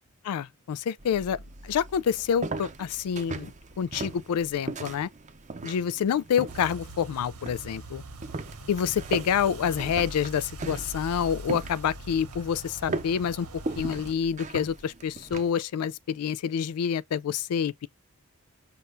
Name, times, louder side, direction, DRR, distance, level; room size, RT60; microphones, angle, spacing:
voice 1, 0.2-3.5 3.8-5.1 5.6-8.0 8.7-13.5 13.8-17.9, left 8 dB, 90° left, 0.3 m, -27 dB
sound 1, 1.0-15.5, right 3 dB, 35° right, 0.6 m, -39 dB
sound 2, 6.5-14.1, right 1 dB, 85° right, 1.2 m, -42 dB
5.6 x 3.4 x 2.5 m
head